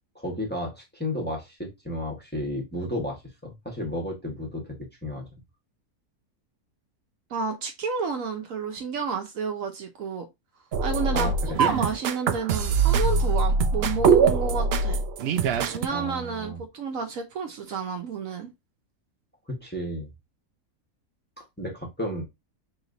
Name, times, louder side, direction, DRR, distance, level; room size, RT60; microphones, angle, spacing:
voice 1, 0.1-5.3 11.1-11.7 15.9-16.6 19.5-20.1 21.6-22.3, equal, 5° left, 1.1 m, -33 dB
voice 2, 7.3-10.3 10.8-15.0 15.7-18.5, right 5 dB, 65° right, 1.1 m, -30 dB
sound 1, 10.7-15.9, right 5 dB, 90° right, 0.5 m, -23 dB
3.3 x 3.0 x 3.8 m
omnidirectional pair, 1.6 m